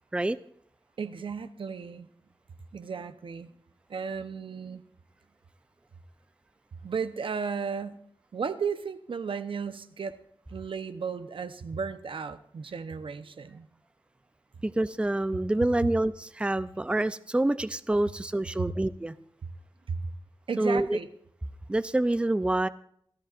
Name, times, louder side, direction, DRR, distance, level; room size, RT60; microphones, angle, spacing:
voice 1, 1.0-2.1 2.7-3.5 3.9-4.8 6.8-8.0 8.3-10.2 10.5-13.7 18.6-18.7 19.9-20.0 20.5-21.1, right 5 dB, 85° right, 11 dB, 0.8 m, -34 dB
voice 2, 14.6-19.1 20.6-21.0 21.7-22.7, right 1 dB, 10° right, 13 dB, 0.5 m, -27 dB
27.0 x 13.5 x 2.5 m, 0.65 s
wide cardioid pair, 115°, 9 cm